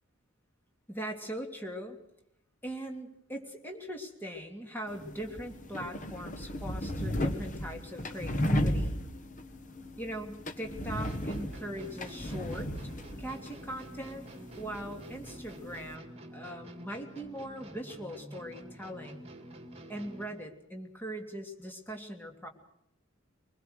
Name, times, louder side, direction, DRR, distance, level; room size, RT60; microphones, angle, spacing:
voice 1, 0.9-2.0 2.6-9.0 10.0-12.7 13.2-14.2 14.6-19.3 19.9-22.5, equal, 10° left, 2 dB, 2.9 m, -40 dB
sound 1, 4.9-16.0, equal, 40° left, 1.4 m, -35 dB
sound 2, 11.0-20.5, right 1 dB, 30° right, 2.2 m, -48 dB
24.0 x 21.0 x 6.5 m, 0.79 s
head